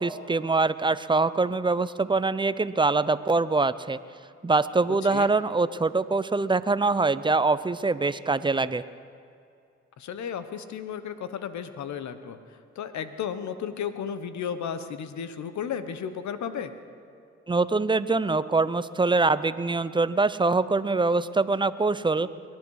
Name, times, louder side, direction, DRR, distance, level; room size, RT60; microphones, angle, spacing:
voice 1, 0.0-4.0 4.4-8.8 17.5-22.3, right 3 dB, 15° right, 15 dB, 0.6 m, -24 dB
voice 2, 10.0-16.7, left 8 dB, 70° left, 11 dB, 1.0 m, -34 dB
23.0 x 10.5 x 4.8 m, 2.4 s
supercardioid pair, 55°, 29 cm